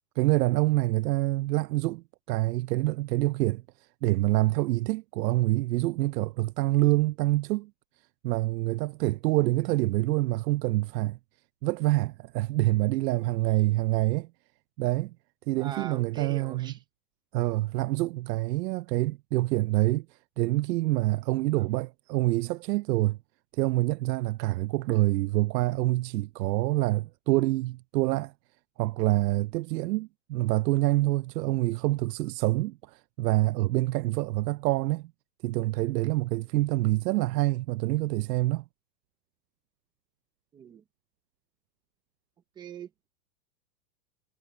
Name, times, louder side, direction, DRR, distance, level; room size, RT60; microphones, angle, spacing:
voice 1, 0.2-3.6 4.0-7.7 8.2-11.2 11.6-14.3 14.8-15.1 15.5-16.7 17.3-20.1 20.4-23.2 23.5-28.3 28.8-35.1 35.4-38.6, right 18 dB, 80° right, 0.5 m, -26 dB
voice 2, 15.6-16.8 21.6-21.7 40.5-40.8 42.6-43.1, right 8 dB, 10° right, 0.6 m, -42 dB
supercardioid pair, 165°, 49 cm